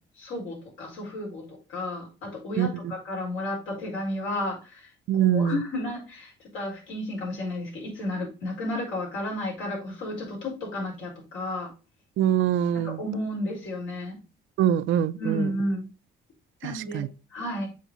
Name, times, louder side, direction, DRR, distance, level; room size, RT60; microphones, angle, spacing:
voice 1, 0.2-11.7 12.7-14.2 15.2-15.9 16.6-17.7, left 1 dB, 80° left, 4.7 m, -32 dB
voice 2, 5.1-5.6 12.2-13.0 14.6-15.5 16.6-17.1, right 10 dB, 75° right, 0.5 m, -23 dB
7.5 x 4.6 x 4.0 m
cardioid pair, 90°, 20 cm